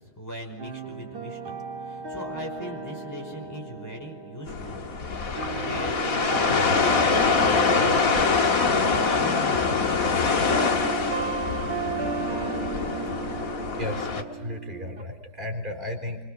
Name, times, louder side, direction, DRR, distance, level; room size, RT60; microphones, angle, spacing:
voice 1, 0.0-11.1, equal, 10° left, 1 dB, 5.2 m, -40 dB
sound 1, 0.6-15.0, right 4 dB, 80° right, 3.4 m, -35 dB
sound 2, 4.5-14.2, left 4 dB, 55° left, 1.9 m, -24 dB
voice 2, 13.7-16.2, left 1 dB, 30° right, 2 dB, 4.3 m, -35 dB
27.0 x 25.5 x 6.7 m, 1.0 s
omnidirectional pair, 1.8 m